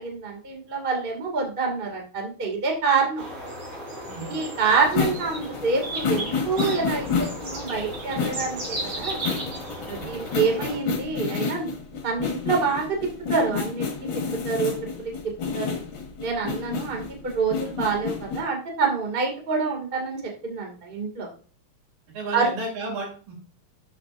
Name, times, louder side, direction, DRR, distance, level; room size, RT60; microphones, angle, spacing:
voice 1, 0.0-3.2 4.2-9.2 9.9-11.7 12.0-12.9 13.3-13.9 14.1-14.7 15.0-15.1 15.5-15.7 16.2-21.3 22.3-22.5, right 4 dB, 20° right, 1 dB, 1.6 m, -26 dB
sound 1, 3.2-10.8, right 1 dB, 40° right, 4.8 m, -35 dB
sound 2, 4.8-18.4, left 5 dB, 45° left, 1.8 m, -30 dB
voice 2, 22.1-23.3, right 2 dB, 70° right, -4 dB, 4.6 m, -33 dB
13.0 x 6.6 x 2.6 m, 0.40 s
omnidirectional pair, 4.2 m